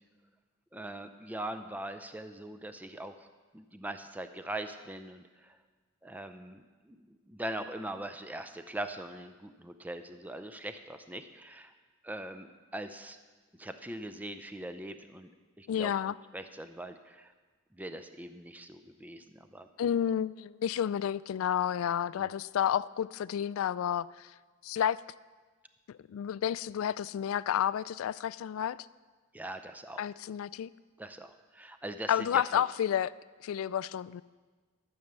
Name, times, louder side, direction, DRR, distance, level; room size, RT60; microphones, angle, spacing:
voice 1, 0.7-3.3 3.5-5.6 6.0-11.7 12.0-12.5 12.7-13.2 13.6-15.3 15.6-17.3 17.7-19.7 22.2-22.3 29.3-30.0 31.0-32.7, right 1 dB, 10° right, 8 dB, 0.5 m, -41 dB
voice 2, 15.7-16.1 19.8-24.3 24.6-25.0 26.1-28.8 30.0-30.7 32.1-33.1 33.4-34.2, left 9 dB, 80° left, 18 dB, 0.3 m, -30 dB
12.5 x 7.1 x 6.7 m, 1.4 s
head